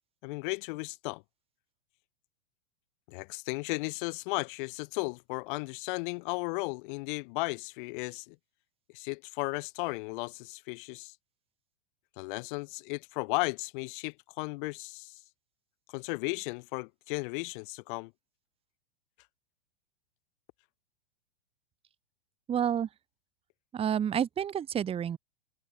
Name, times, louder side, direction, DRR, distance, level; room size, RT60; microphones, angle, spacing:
voice 1, 0.2-1.2 3.1-8.4 8.9-11.1 12.2-15.1 15.9-18.1, left 28 dB, 50° left, 2.3 m, -35 dB
voice 2, 22.5-22.9 23.7-25.2, right 9 dB, 15° right, 0.9 m, -29 dB
hypercardioid pair, 105°, 32 cm